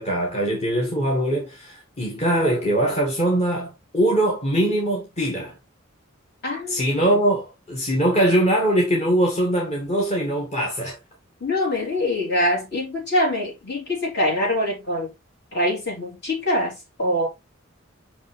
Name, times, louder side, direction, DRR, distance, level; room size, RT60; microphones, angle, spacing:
voice 1, 0.0-5.5 6.7-7.4 7.7-11.0, right 1 dB, 35° left, 1.6 m, -22 dB
voice 2, 6.4-6.8 11.4-15.1 15.5-17.3, left 1 dB, 55° left, 3.3 m, -24 dB
5.9 x 5.4 x 3.3 m
head